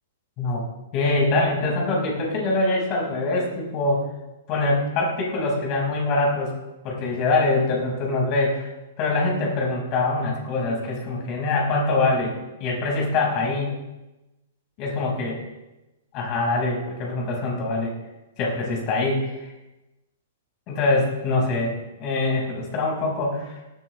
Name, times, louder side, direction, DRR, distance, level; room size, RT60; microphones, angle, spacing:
voice 1, 0.9-4.0 4.5-6.5 6.8-8.7 9.0-12.4 12.6-13.7 14.8-15.4 16.1-17.9 18.4-19.5 20.7-23.6, left 2 dB, 35° left, -2 dB, 5.4 m, -24 dB
18.5 x 13.5 x 3.3 m, 1.0 s
figure-of-eight pair, 110°, 0 cm